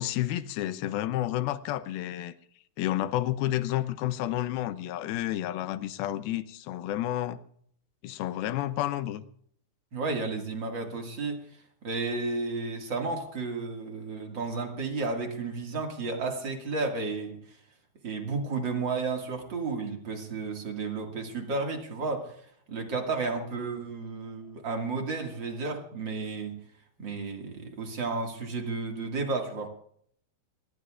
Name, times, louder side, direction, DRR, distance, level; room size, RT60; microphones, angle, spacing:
voice 1, 0.0-2.3 2.8-7.4 8.0-9.3, left 13 dB, 80° left, 2.5 m, -30 dB
voice 2, 9.9-11.4 11.8-17.6 18.0-22.4 22.7-26.6 27.0-29.7, right 3 dB, 40° right, 2.0 m, -32 dB
26.0 x 20.0 x 2.5 m
omnidirectional pair, 4.5 m